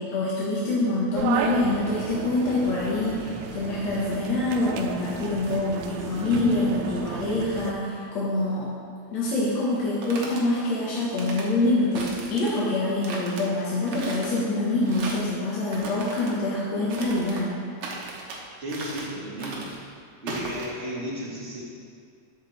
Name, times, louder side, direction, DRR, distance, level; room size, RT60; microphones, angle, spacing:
voice 1, 0.0-8.7 9.1-17.5, left 2 dB, 65° left, -8 dB, 2.6 m, -25 dB
sound 1, 1.1-7.7, right 6 dB, 85° right, 1.9 m, -33 dB
sound 2, 9.8-10.4 11.0-11.5 11.9-12.6 13.0-13.4 13.9-14.4 14.8-15.3 15.7-16.4 16.9-17.5 17.8-18.4 18.7-19.1 19.4-19.8 20.3-20.7, right 3 dB, 60° right, 1.8 m, -37 dB
voice 2, 18.6-19.7 20.2-21.6, equal, 25° right, -7 dB, 1.7 m, -33 dB
12.5 x 7.5 x 3.4 m, 2.2 s
omnidirectional pair, 3.4 m